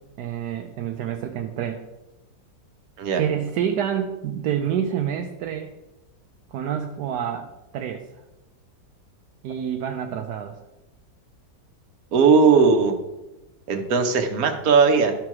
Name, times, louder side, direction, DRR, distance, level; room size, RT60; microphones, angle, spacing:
voice 1, 0.2-1.8 3.1-5.7 6.5-8.0 9.4-10.6, right 9 dB, 80° right, 4 dB, 1.2 m, -28 dB
voice 2, 12.1-13.0 13.7-15.2, right 5 dB, 60° right, 5 dB, 1.4 m, -18 dB
12.5 x 4.5 x 4.8 m, 1.0 s
omnidirectional pair, 1.8 m